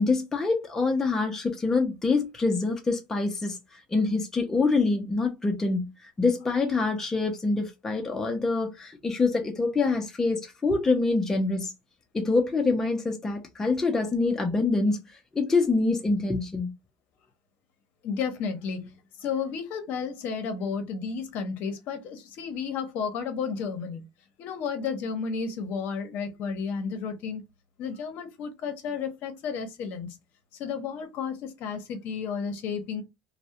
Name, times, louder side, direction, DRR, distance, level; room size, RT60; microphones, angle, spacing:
voice 1, 0.0-11.7 12.1-15.0 15.3-16.7, left 3 dB, 10° left, 0.4 m, -25 dB
voice 2, 18.0-24.0 24.4-27.4 27.8-30.2 30.5-33.0, left 6 dB, 55° left, 0.7 m, -32 dB
2.3 x 2.0 x 2.8 m
cardioid pair, 145°, 4 cm